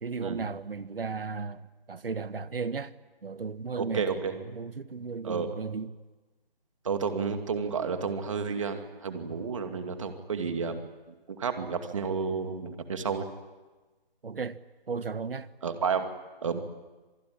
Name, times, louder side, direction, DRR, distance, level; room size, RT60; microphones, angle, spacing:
voice 1, 0.0-2.9 3.2-5.9 14.2-14.6 14.9-15.5, right 5 dB, 70° right, 1.5 m, -35 dB
voice 2, 3.8-4.4 5.2-5.5 6.8-13.3 15.6-16.1 16.4-16.6, right 5 dB, 30° right, 2.5 m, -31 dB
26.0 x 20.0 x 9.9 m
hypercardioid pair, 170°, 30 cm